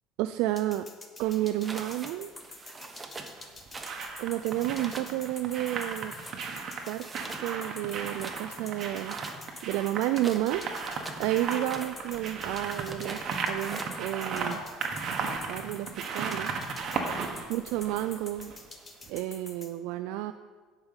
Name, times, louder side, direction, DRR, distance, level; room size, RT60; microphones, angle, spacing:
voice 1, 0.2-0.9 1.2-2.3 2.6-2.8 4.2-6.1 6.9-7.1 7.4-9.2 9.6-10.7 11.2-13.2 13.5-14.6 15.2-16.5 17.5-18.5 19.1-20.3, right 14 dB, 75° right, 9 dB, 0.3 m, -31 dB
sound 1, 0.6-19.7, left 3 dB, 25° left, 1.2 m, -47 dB
sound 2, 1.2-1.9 3.2-18.7 19.0-19.1, right 5 dB, 50° right, 1.3 m, -36 dB
sound 3, 1.6-2.1 2.4-3.3 3.7-4.1 4.3-5.1 5.6-6.4 6.7-7.5 7.8-8.4 9.0-11.2 11.5-11.9 12.6-13.2 13.6-14.0, right 3 dB, 20° right, 1.0 m, -44 dB
11.0 x 5.2 x 5.6 m, 1.5 s
supercardioid pair, 100°, 0 cm